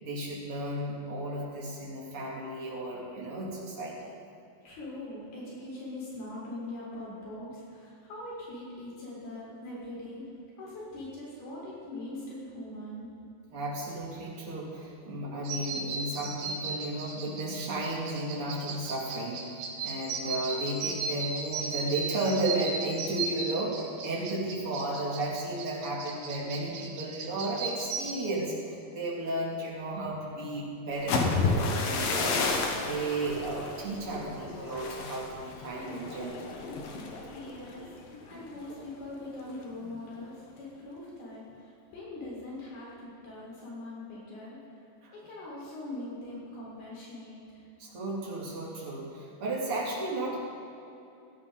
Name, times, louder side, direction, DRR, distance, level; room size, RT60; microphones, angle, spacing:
voice 1, 0.0-4.1 13.5-32.4 32.8-36.5 45.0-45.1 47.8-50.4, right 1 dB, 40° right, -5 dB, 3.4 m, -34 dB
voice 2, 4.6-10.3 10.6-13.1 37.1-44.8 45.1-47.6, left 1 dB, 80° left, -6 dB, 6.1 m, -42 dB
sound 1, 15.4-28.1, right 4 dB, 80° right, 3.2 m, -36 dB
sound 2, 30.9-38.8 39.1-39.5 39.8-40.2, left 4 dB, 60° left, 1.6 m, -32 dB
16.0 x 15.0 x 4.0 m, 2.8 s
omnidirectional pair, 4.4 m